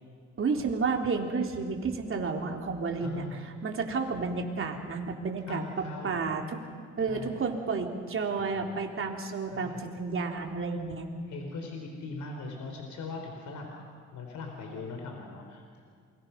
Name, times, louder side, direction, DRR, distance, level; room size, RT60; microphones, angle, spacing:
voice 1, 0.4-3.2 3.6-6.6 7.0-11.1, right 4 dB, 45° right, 2 dB, 3.4 m, -31 dB
voice 2, 3.0-3.4 5.5-6.2 7.1-7.4 8.4-8.8 9.5-9.8 11.3-13.8 14.1-15.8, left 3 dB, 70° left, 2 dB, 3.8 m, -40 dB
28.5 x 23.0 x 5.8 m, 2.1 s
cardioid pair, 90°, 30 cm